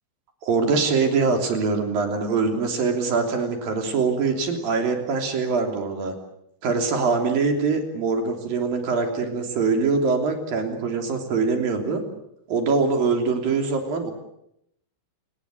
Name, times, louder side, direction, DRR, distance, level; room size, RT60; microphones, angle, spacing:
voice 1, 0.4-6.1 6.6-12.0 12.5-14.1, right 4 dB, 50° right, 4 dB, 4.6 m, -23 dB
28.5 x 19.0 x 7.9 m, 0.76 s
omnidirectional pair, 5.4 m